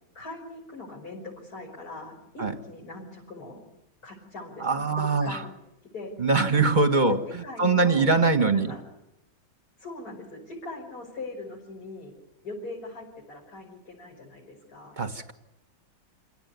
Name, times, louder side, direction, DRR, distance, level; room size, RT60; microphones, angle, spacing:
voice 1, 0.1-3.6 4.0-4.9 5.2-5.5 5.9-6.1 7.0-8.2 8.5-8.8 9.8-12.1 12.4-15.0, left 2 dB, 50° left, -2 dB, 6.3 m, -41 dB
voice 2, 4.6-5.4 6.2-8.7 15.0-15.3, right 3 dB, 25° right, 7 dB, 1.6 m, -23 dB
29.0 x 17.5 x 9.5 m, 0.87 s
omnidirectional pair, 2.0 m